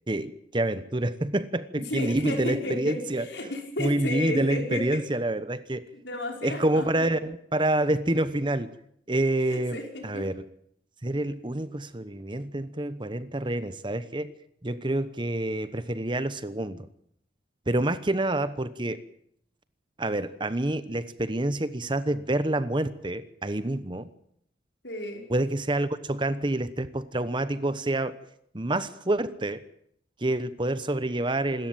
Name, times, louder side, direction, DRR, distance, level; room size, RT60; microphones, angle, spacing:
voice 1, 0.1-3.2 3.8-5.9 6.4-8.7 9.1-10.3 11.0-14.3 14.6-16.9 17.7-19.0 20.0-24.1 25.3-28.1 28.5-29.6 30.2-31.7, right 1 dB, 25° right, 14 dB, 1.0 m, -27 dB
voice 2, 1.9-5.0 6.0-7.1 9.4-10.3 24.8-25.3, left 1 dB, 70° left, 3 dB, 5.7 m, -33 dB
26.5 x 14.0 x 9.0 m, 0.70 s
head